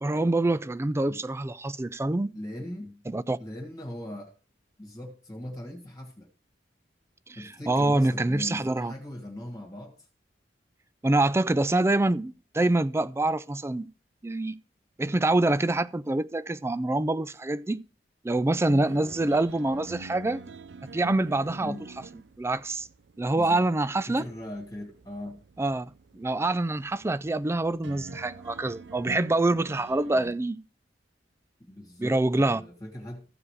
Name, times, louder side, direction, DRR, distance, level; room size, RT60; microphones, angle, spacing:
voice 1, 0.0-2.3 3.1-3.4 7.3-8.9 11.0-13.9 14.2-14.6 15.0-17.8 18.2-20.4 20.9-21.8 22.4-22.9 23.2-24.2 25.6-25.9 26.1-30.6 32.0-32.6, right 2 dB, 15° right, 0.4 m, -26 dB
voice 2, 2.3-3.0 3.4-4.3 4.8-6.3 7.4-9.9 18.9-19.1 21.6-21.8 23.3-23.6 24.1-25.4 31.6-33.2, left 1 dB, 20° left, 1.7 m, -39 dB
sound 1, 18.5-30.3, right 3 dB, 75° right, 0.5 m, -46 dB
15.0 x 5.0 x 4.8 m
head